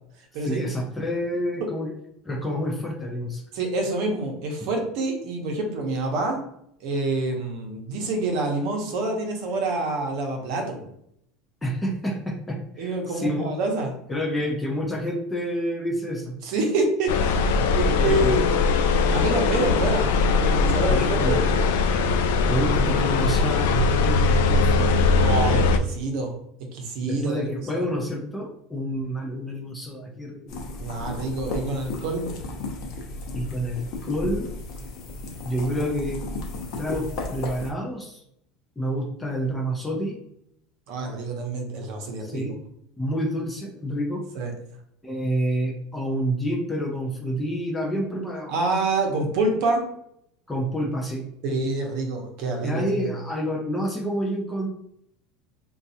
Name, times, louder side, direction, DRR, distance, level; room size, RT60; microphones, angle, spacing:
voice 1, 0.4-1.9 2.2-3.4 4.6-4.7 11.6-13.5 14.1-16.4 17.9-18.6 20.9-21.4 22.5-24.9 27.1-30.6 33.3-34.5 35.4-36.2 36.8-38.2 38.8-40.2 42.2-42.6 43.0-44.2 45.0-48.5 50.5-51.2 52.6-54.7, equal, 5° left, 0 dB, 0.4 m, -28 dB
voice 2, 3.5-6.4 6.8-10.9 12.8-13.9 16.4-18.7 19.1-20.1 20.4-21.0 21.2-21.8 25.2-26.3 26.7-27.8 30.8-32.2 40.9-42.5 44.3-44.5 48.5-49.8 51.4-53.2, right 2 dB, 50° right, 3 dB, 0.7 m, -27 dB
sound 1, 17.1-25.8, left 4 dB, 85° left, 0.3 m, -21 dB
sound 2, 30.5-37.7, left 2 dB, 40° left, 0.7 m, -34 dB
4.2 x 2.3 x 2.7 m, 0.74 s
supercardioid pair, 180°, 0 cm